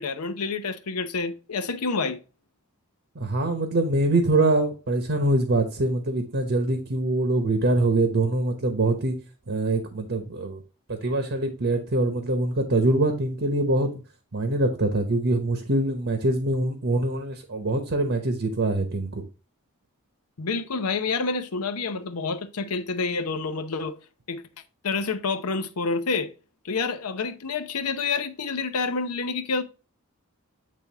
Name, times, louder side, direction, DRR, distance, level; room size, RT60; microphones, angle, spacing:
voice 1, 0.0-2.2 20.4-23.9 24.3-24.4 24.8-26.3 26.6-29.6, left 4 dB, 85° left, 0.7 m, -28 dB
voice 2, 3.1-9.2 9.5-10.6 10.9-13.9 14.3-19.2, right 2 dB, 55° right, 1.0 m, -24 dB
8.5 x 3.4 x 3.4 m
head